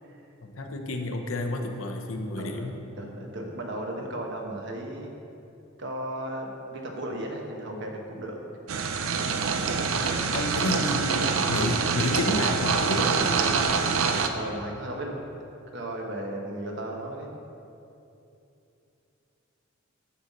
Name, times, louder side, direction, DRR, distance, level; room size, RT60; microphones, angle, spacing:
voice 1, 0.4-2.7 10.3-13.4, left 2 dB, 80° left, 3 dB, 0.9 m, -30 dB
voice 2, 2.3-2.7 3.0-5.1 5.8-8.4 10.6-10.7 14.3-15.3 15.7-17.4, right 1 dB, 60° right, 1 dB, 1.1 m, -35 dB
sound 1, 8.7-14.3, right 5 dB, 85° right, 0.6 m, -25 dB
9.5 x 4.1 x 7.2 m, 2.8 s
head